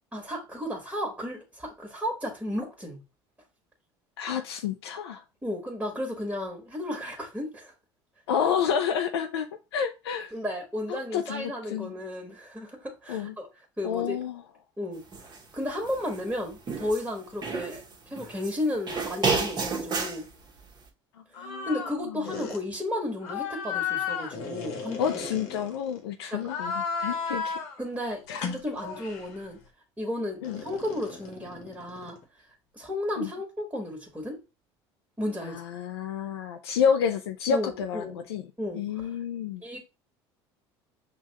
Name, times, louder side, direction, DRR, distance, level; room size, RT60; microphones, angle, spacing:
voice 1, 0.1-3.0 5.4-7.7 10.3-13.5 13.8-14.2 14.8-15.0 15.5-20.3 21.4-25.2 26.3-26.4 27.8-29.6 30.0-32.2 32.7-34.4 35.2-35.6 37.5-38.3 38.6-39.1 39.6-39.8, left 1 dB, 10° right, 1.4 m, -33 dB
voice 2, 4.2-5.2 8.3-10.3 10.9-11.9 13.1-13.3 13.8-14.4 21.4-22.3 25.0-27.6 28.3-28.5 30.4-30.6 33.2-33.3 35.4-38.5 38.7-39.6, left 7 dB, 85° left, 0.4 m, -29 dB
sound 1, 15.1-15.4 15.8-17.1 17.4-18.6 18.9-20.2, right 4 dB, 35° right, 1.0 m, -30 dB
sound 2, 21.3-22.0 22.2-22.6 23.2-26.0 26.4-27.8 28.3-29.3 30.4-32.2, left 6 dB, 65° left, 0.9 m, -34 dB
5.6 x 2.3 x 2.8 m
hypercardioid pair, 75°, 13 cm